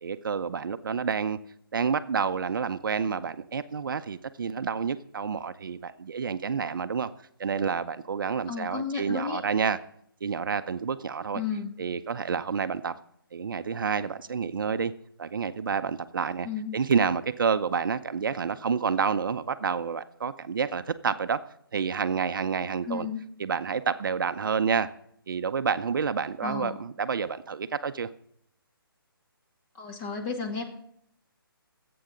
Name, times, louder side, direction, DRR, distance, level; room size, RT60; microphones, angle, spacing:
voice 1, 0.0-1.4 1.7-7.1 7.4-9.8 10.2-11.4 11.8-12.9 13.3-14.9 15.2-16.5 16.7-21.4 21.7-23.1 23.4-24.9 25.3-28.1, right 6 dB, 60° right, 12 dB, 0.7 m, -29 dB
voice 2, 8.5-9.4 11.3-11.7 16.4-16.8 22.8-23.3 26.4-26.8 29.7-30.6, left 6 dB, 20° left, 3 dB, 2.1 m, -33 dB
24.5 x 8.7 x 3.9 m, 0.69 s
figure-of-eight pair, 145°, 12 cm